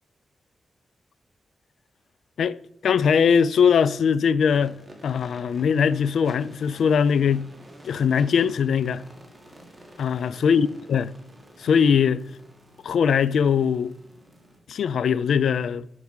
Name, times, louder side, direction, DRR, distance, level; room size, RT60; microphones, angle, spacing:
voice 1, 2.8-4.8 5.0-7.4 7.9-9.0 10.0-11.1 11.6-12.2 12.8-13.9 14.7-15.8, left 7 dB, 85° left, 0.3 m, -21 dB
sound 1, 4.5-14.6, right 1 dB, 25° right, 2.2 m, -49 dB
8.0 x 4.7 x 7.3 m
cardioid pair, 75°, 0 cm